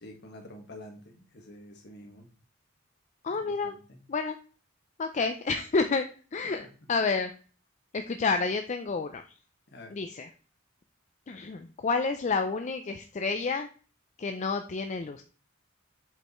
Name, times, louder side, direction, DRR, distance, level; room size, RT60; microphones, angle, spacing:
voice 1, 0.0-2.3 3.4-4.0 6.4-6.7 9.7-9.9, left 1 dB, 55° left, 3 dB, 1.6 m, -48 dB
voice 2, 3.2-3.7 4.1-4.4 5.0-6.1 6.3-7.3 7.9-9.2 9.9-10.3 11.3-13.7 14.2-15.2, left 4 dB, 35° left, 7 dB, 0.4 m, -29 dB
7.5 x 5.5 x 3.1 m, 0.38 s
head